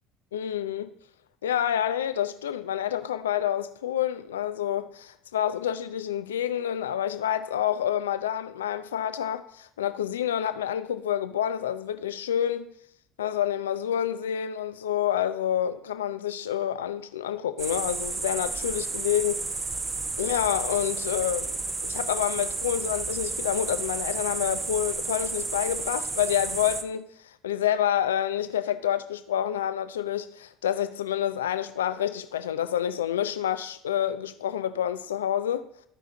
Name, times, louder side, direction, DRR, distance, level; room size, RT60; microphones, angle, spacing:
voice 1, 0.3-0.9 1.4-12.7 13.2-19.5 20.2-21.6 21.8-27.1 27.4-35.7, left 10 dB, 85° left, 0.5 m, -28 dB
sound 1, 17.6-26.8, right 3 dB, 30° right, 0.9 m, -32 dB
14.5 x 5.0 x 3.9 m
hypercardioid pair, 65°, 0 cm